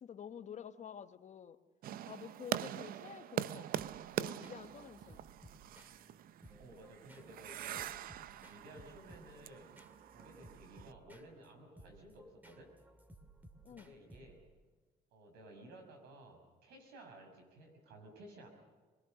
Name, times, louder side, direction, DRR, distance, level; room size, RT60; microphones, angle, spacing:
voice 1, 0.0-1.6 2.1-3.9 4.2-5.2 13.6-13.9, left 8 dB, 45° left, 10 dB, 1.1 m, -49 dB
sound 1, 1.8-10.9, right 12 dB, 65° right, 0.6 m, -43 dB
sound 2, 3.8-14.6, right 1 dB, 10° right, 2.2 m, -60 dB
voice 2, 6.6-7.9 8.3-9.8 10.1-12.7 13.7-14.4 15.1-18.5, right 1 dB, 90° right, 4 dB, 5.8 m, -56 dB
23.5 x 20.5 x 6.6 m, 1.4 s
cardioid pair, 95°, 16 cm